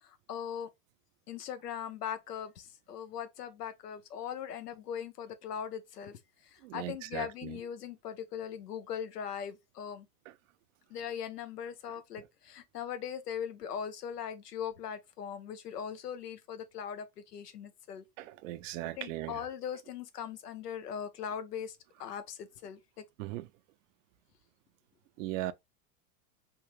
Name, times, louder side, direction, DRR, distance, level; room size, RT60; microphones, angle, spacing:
voice 1, 0.0-0.7 1.3-6.2 6.5-10.1 10.9-18.0 19.0-23.0, left 8 dB, 80° left, 0.8 m, -40 dB
voice 2, 6.6-7.6 10.3-10.4 12.2-12.3 18.2-19.5 23.2-23.5 25.2-25.5, right 16 dB, 55° right, 0.6 m, -38 dB
3.4 x 3.0 x 3.0 m
hypercardioid pair, 100°, 46 cm